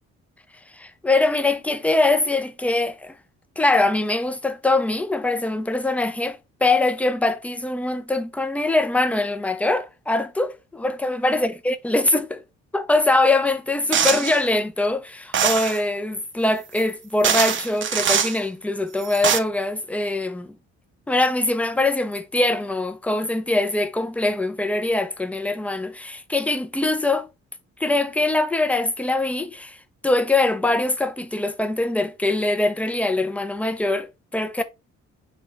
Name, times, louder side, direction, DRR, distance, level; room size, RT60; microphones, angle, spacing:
voice 1, 0.7-3.2 3.6-12.4 12.7-20.6 21.1-27.3 27.8-29.8 30.0-34.6, left 2 dB, 5° left, 0.4 m, -23 dB
sound 1, 13.9-14.4 15.3-15.8 16.8-16.9 17.2-18.4 19.0-19.4, right 8 dB, 40° right, 0.5 m, -22 dB
4.1 x 2.9 x 3.2 m
cardioid pair, 90°, 30 cm